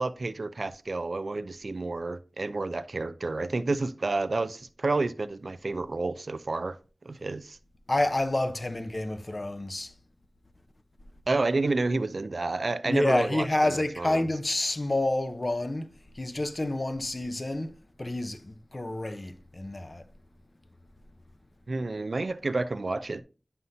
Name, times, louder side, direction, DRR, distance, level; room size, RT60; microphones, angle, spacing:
voice 1, 0.0-6.8 7.1-7.6 11.3-14.3 21.7-23.2, right 3 dB, 70° right, 0.5 m, -30 dB
voice 2, 7.9-9.9 12.8-15.9 16.2-17.7 18.0-20.0, left 1 dB, 45° left, 0.8 m, -28 dB
9.4 x 5.6 x 2.7 m
wide cardioid pair, 45°, 0 cm